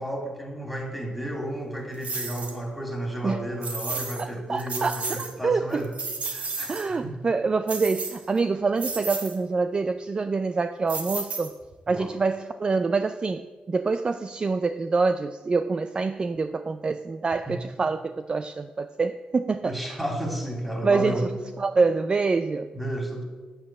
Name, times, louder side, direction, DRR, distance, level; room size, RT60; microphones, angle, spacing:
voice 1, 0.0-5.9 6.3-7.1 11.9-12.1 17.5-17.6 19.6-21.3 22.7-23.2, right 1 dB, ahead, 2 dB, 3.1 m, -32 dB
sound 1, 2.0-2.6 3.6-4.2 4.6-5.3 5.7-6.9 7.7-8.4 8.8-9.4 10.9-11.7, right 3 dB, 55° right, 1.9 m, -33 dB
voice 2, 4.2-5.8 6.7-11.5 11.9-19.8 20.8-21.3 21.6-22.7, right 4 dB, 35° right, 10 dB, 0.4 m, -26 dB
8.7 x 8.2 x 7.4 m, 1.3 s
cardioid pair, 85°, 3 cm